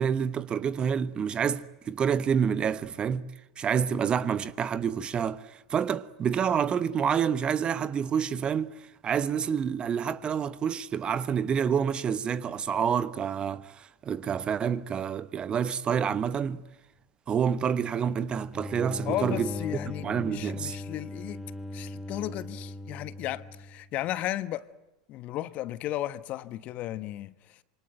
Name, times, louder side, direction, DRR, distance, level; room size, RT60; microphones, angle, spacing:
voice 1, 0.0-3.3 3.6-8.8 9.0-16.6 17.3-19.5 20.0-20.8, right 7 dB, 30° right, 1.0 m, -28 dB
sound 1, 18.5-23.9, left 3 dB, ahead, 1.2 m, -39 dB
voice 2, 19.0-21.4 21.7-24.7 25.1-27.6, left 14 dB, 45° left, 1.2 m, -34 dB
26.5 x 24.5 x 9.0 m
figure-of-eight pair, 85°, 3 cm